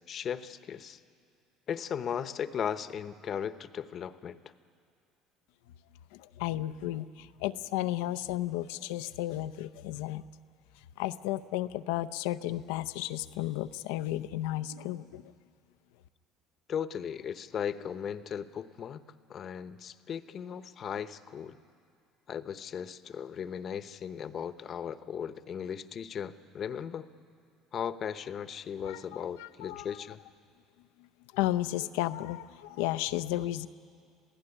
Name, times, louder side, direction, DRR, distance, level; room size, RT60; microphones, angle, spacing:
voice 1, 0.1-1.0 1.7-4.4 16.7-19.0 19.3-21.6 22.3-27.1 27.7-30.2, left 8 dB, 45° left, 12 dB, 0.9 m, -37 dB
voice 2, 6.1-10.2 11.0-15.3 28.8-29.0 29.4-30.0 31.3-33.7, left 14 dB, 85° left, 13 dB, 0.6 m, -33 dB
26.5 x 16.5 x 10.0 m, 2.3 s
supercardioid pair, 100°, 0 cm